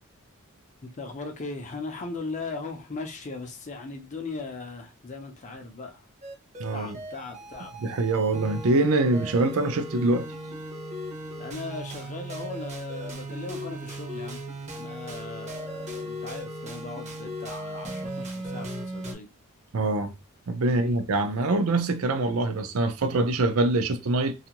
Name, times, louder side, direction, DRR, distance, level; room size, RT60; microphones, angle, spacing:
voice 1, 0.8-6.1 6.7-7.7 11.4-14.4 14.7-19.3 20.7-21.0, left 3 dB, 35° left, 0.5 m, -38 dB
sound 1, 6.2-19.1, right 1 dB, 30° right, 0.7 m, -37 dB
voice 2, 6.6-7.0 7.8-10.3 19.7-20.1 20.5-24.3, right 2 dB, 70° right, 0.5 m, -24 dB
2.5 x 2.4 x 2.9 m
head